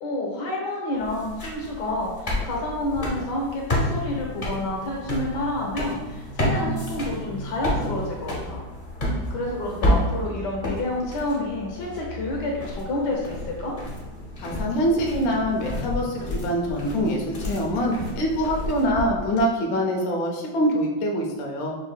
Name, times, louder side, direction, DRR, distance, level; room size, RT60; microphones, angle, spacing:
voice 1, 0.0-8.6 9.3-13.8, left 1 dB, 65° left, -1 dB, 1.5 m, -29 dB
sound 1, 1.0-19.4, left 1 dB, 45° left, 0.7 m, -30 dB
voice 2, 14.4-21.8, equal, 80° left, 0 dB, 0.6 m, -24 dB
6.8 x 2.7 x 2.2 m, 1.2 s
omnidirectional pair, 2.1 m